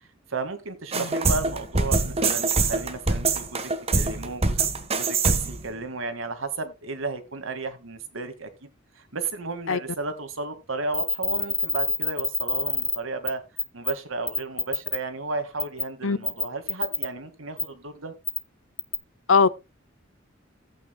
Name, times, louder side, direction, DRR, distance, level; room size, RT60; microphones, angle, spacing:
voice 1, 0.3-8.7 9.0-13.4 13.7-18.1, right 3 dB, 90° right, 1.9 m, -33 dB
sound 1, 0.9-5.7, right 3 dB, 30° right, 1.2 m, -24 dB
voice 2, 1.0-1.1 9.7-9.8 16.0-16.2 19.3-19.5, left 5 dB, 75° left, 0.7 m, -20 dB
sound 2, 10.9-13.0 13.3-13.4 13.6-13.9 14.3-15.0 15.6-15.8 16.2-17.1 17.6-17.7 18.3-18.4 18.8-18.9, left 2 dB, 10° left, 0.8 m, -26 dB
16.5 x 8.8 x 2.2 m
head